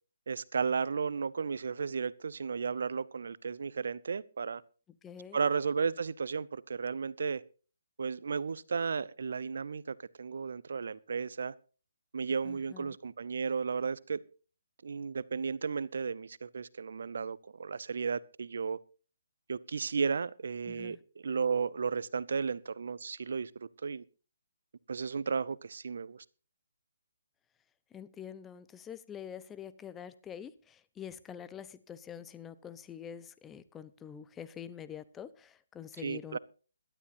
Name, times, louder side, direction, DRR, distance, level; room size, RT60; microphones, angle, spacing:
voice 1, 0.3-4.6 5.3-7.4 8.0-11.5 12.1-14.2 14.8-18.8 19.5-24.0 24.9-26.2 36.0-36.4, right 5 dB, 60° right, 0.7 m, -34 dB
voice 2, 5.0-5.4 12.4-13.0 20.7-21.0 27.9-36.4, left 8 dB, 10° left, 0.7 m, -46 dB
22.0 x 12.0 x 2.7 m
figure-of-eight pair, 140°, 0 cm